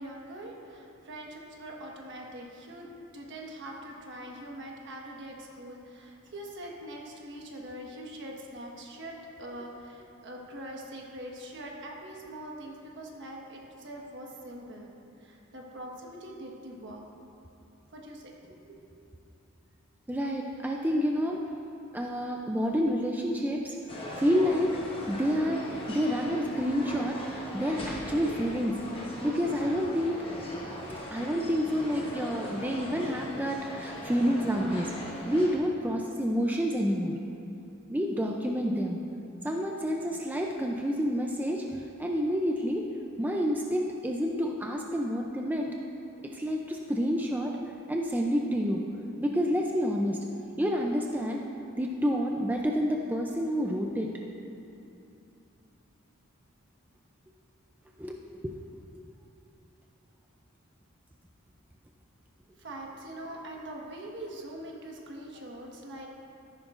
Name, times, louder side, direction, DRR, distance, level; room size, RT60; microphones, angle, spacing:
voice 1, 0.0-14.9 15.2-17.0 17.9-18.8 62.5-66.1, right 1 dB, 60° right, -1 dB, 1.4 m, -43 dB
voice 2, 20.1-21.4 21.9-23.8 24.2-24.8 25.1-28.8 29.2-30.2 30.6-34.9 35.3-37.2 37.9-39.0 39.4-42.9 43.2-45.7 46.2-47.5 47.9-48.8 49.2-50.2 50.6-51.5 51.7-54.1 58.0-58.6, equal, 10° right, 0 dB, 0.4 m, -29 dB
sound 1, 23.9-35.6, left 1 dB, 25° left, 1.4 m, -39 dB
13.5 x 11.0 x 2.5 m, 2.8 s
head